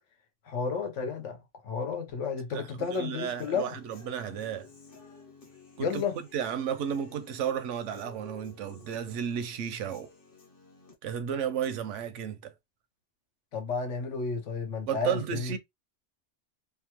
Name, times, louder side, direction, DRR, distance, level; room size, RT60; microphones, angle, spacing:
voice 1, 0.5-1.4 1.6-3.7 5.8-6.1 13.5-15.6, left 5 dB, 80° left, 1.1 m, -32 dB
voice 2, 2.5-4.7 5.8-6.0 6.3-10.1 11.0-12.5 14.9-15.6, right 8 dB, 80° right, 0.9 m, -33 dB
Human voice / Guitar, 2.9-10.9, left 4 dB, 50° left, 1.1 m, -54 dB
2.8 x 2.2 x 2.9 m
omnidirectional pair, 1.2 m